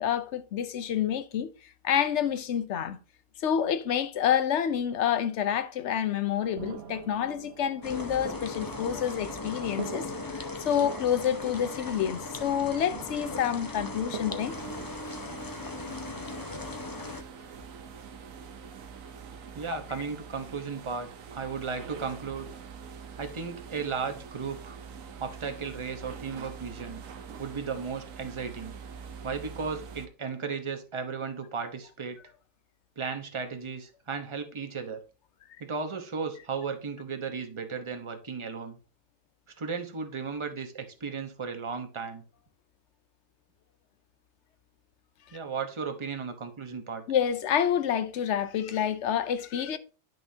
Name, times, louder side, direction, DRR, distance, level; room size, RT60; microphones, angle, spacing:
voice 1, 0.0-1.5 1.8-3.0 3.4-10.1 10.3-14.6 47.1-49.8, left 9 dB, 65° left, 0.9 m, -28 dB
sound 1, 6.3-14.9, right 6 dB, 55° right, 1.1 m, -45 dB
sound 2, 7.8-17.2, left 3 dB, 20° left, 0.6 m, -38 dB
sound 3, 14.4-30.1, right 6 dB, 80° right, 1.3 m, -45 dB
voice 2, 19.5-22.5 23.2-24.8 25.2-27.0 27.4-28.7 29.2-32.2 33.0-35.0 35.6-38.8 39.6-42.2 45.3-47.0, right 5 dB, 25° right, 0.9 m, -35 dB
10.5 x 6.1 x 2.8 m
omnidirectional pair, 1.4 m